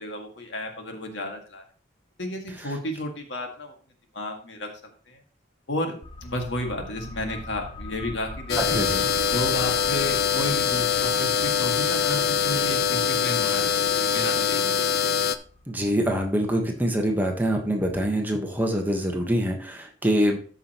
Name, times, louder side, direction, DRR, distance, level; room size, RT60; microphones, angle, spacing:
voice 1, 0.0-1.6 2.2-3.7 4.1-4.7 5.1-5.2 5.7-8.8 9.2-15.0, left 1 dB, 75° left, 3 dB, 2.0 m, -32 dB
sound 1, 6.0-17.4 17.7-17.8, left 2 dB, 25° left, 0.8 m, -43 dB
sound 2, 8.5-15.4, left 7 dB, 55° left, 0.5 m, -23 dB
voice 2, 8.7-9.1 15.7-20.4, equal, 10° right, 2 dB, 1.2 m, -25 dB
13.5 x 5.7 x 3.0 m, 0.41 s
head